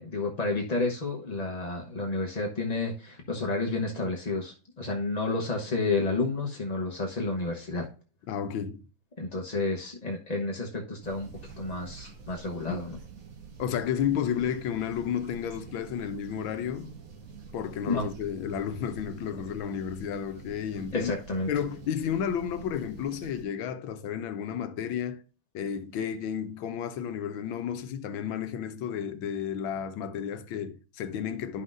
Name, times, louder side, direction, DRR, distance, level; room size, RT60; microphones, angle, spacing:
voice 1, 0.0-7.9 9.2-11.3 11.6-13.0 17.9-18.1 20.9-21.5, left 3 dB, 35° left, 0.6 m, -30 dB
voice 2, 8.3-8.8 12.7-12.8 13.6-17.0 17.5-21.1 21.5-25.2 25.5-31.6, left 8 dB, 70° left, 1.5 m, -32 dB
sound 1, 11.0-23.4, right 5 dB, 45° right, 1.4 m, -47 dB
11.0 x 5.8 x 2.6 m
omnidirectional pair, 2.4 m